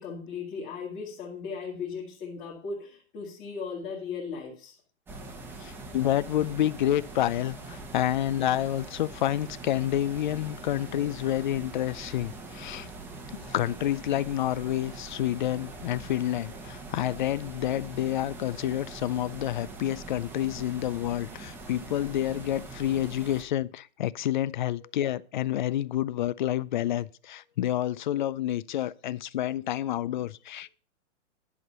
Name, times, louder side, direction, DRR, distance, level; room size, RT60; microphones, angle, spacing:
voice 1, 0.0-4.8 24.8-24.9, left 5 dB, 25° left, 2.1 m, -37 dB
sound 1, 5.1-23.4, right 3 dB, 5° right, 0.9 m, -43 dB
voice 2, 5.6-12.9 13.3-30.7, left 12 dB, 45° left, 0.4 m, -29 dB
11.0 x 6.1 x 5.5 m
hypercardioid pair, 160°, 35 cm